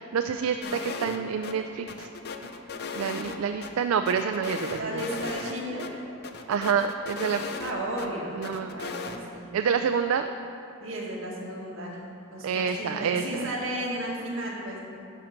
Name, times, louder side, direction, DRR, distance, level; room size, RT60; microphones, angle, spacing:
voice 1, 0.0-2.1 2.9-5.2 6.5-7.5 8.3-8.7 9.5-10.3 12.4-13.5, right 6 dB, 85° right, 8 dB, 0.4 m, -28 dB
sound 1, 0.6-1.2 1.4-1.5 1.9-3.7 4.1-5.5 5.8-5.9 6.2-8.1 8.4-9.2, left 4 dB, 50° left, 0.6 m, -36 dB
voice 2, 4.8-6.1 7.4-9.5 10.8-12.0 12.3-14.8, right 1 dB, 70° right, -3 dB, 1.8 m, -34 dB
11.0 x 5.2 x 5.8 m, 2.9 s
head